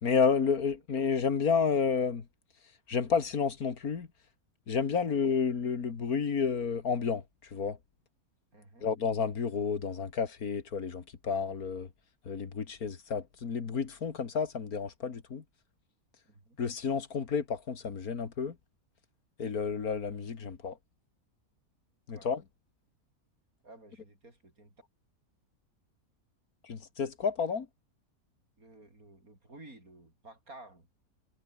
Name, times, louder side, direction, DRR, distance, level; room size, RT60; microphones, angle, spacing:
voice 1, 0.0-2.3 2.9-4.1 4.7-7.2 7.5-7.8 8.8-11.9 12.3-15.4 16.6-18.6 19.4-20.8 22.1-22.4 26.6-27.7, left 6 dB, 80° left, 2.4 m, -30 dB
voice 2, 8.5-8.9 16.3-16.6 22.1-22.3 23.6-24.7 28.6-30.9, right 2 dB, 75° right, 7.3 m, -53 dB
omnidirectional pair, 1.5 m